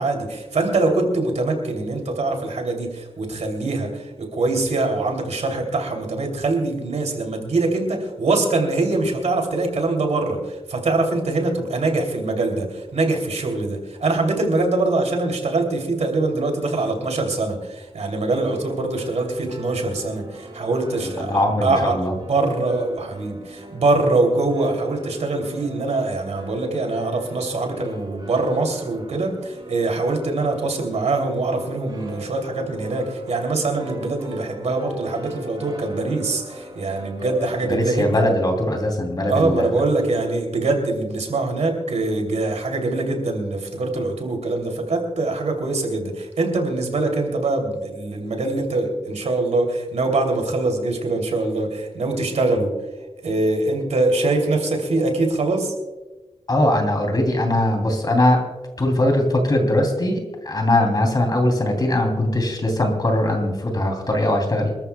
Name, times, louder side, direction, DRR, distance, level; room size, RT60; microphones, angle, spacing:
voice 1, 0.0-22.0 22.3-38.2 39.3-52.7 53.2-55.7, right 2 dB, 85° right, 3 dB, 3.0 m, -23 dB
sound 1, 18.4-37.6, right 1 dB, 40° right, 4.1 m, -40 dB
voice 2, 21.2-22.1 37.7-39.7 56.5-58.4 58.8-64.8, left 1 dB, 35° left, 3 dB, 3.0 m, -20 dB
27.0 x 13.5 x 2.3 m, 1.2 s
wide cardioid pair, 125°, 11 cm